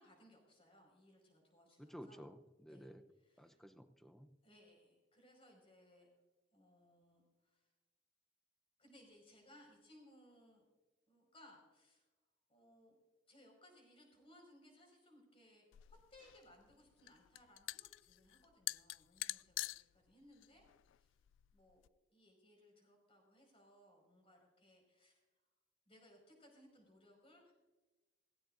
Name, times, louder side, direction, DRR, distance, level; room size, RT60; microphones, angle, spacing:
voice 1, 0.0-2.3 2.7-3.6 4.4-6.1 6.5-7.7 8.8-10.6 11.1-12.1 12.5-13.0 13.3-20.7 21.0-21.2 21.5-21.8 22.1-25.3 25.9-27.5, left 1 dB, 30° left, 1 dB, 5.3 m, -65 dB
voice 2, 1.8-3.0 3.4-4.3, equal, ahead, 7 dB, 0.7 m, -54 dB
sound 1, 15.7-21.9, left 17 dB, 85° left, 0.3 m, -47 dB
17.0 x 17.0 x 2.6 m, 1.2 s
head